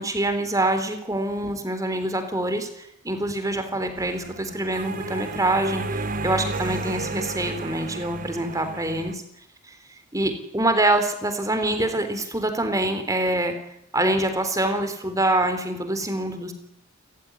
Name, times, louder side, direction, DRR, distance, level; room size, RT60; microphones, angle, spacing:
voice 1, 0.0-9.2 9.6-9.8 10.1-13.6 13.9-16.5, right 1 dB, 15° right, 8 dB, 3.6 m, -25 dB
sound 1, 4.0-9.1, right 3 dB, 40° right, 1.2 m, -32 dB
29.5 x 15.0 x 9.9 m, 0.78 s
head